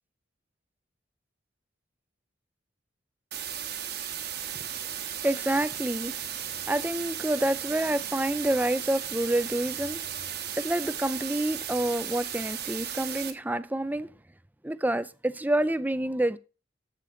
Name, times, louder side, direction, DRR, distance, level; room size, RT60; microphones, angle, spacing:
sound 1, 3.3-13.3, right 9 dB, 60° right, 1.4 m, -35 dB
voice 1, 5.2-6.1 6.7-10.3 10.6-14.1 14.6-16.4, right 1 dB, 10° right, 0.5 m, -28 dB
13.5 x 6.7 x 3.8 m
head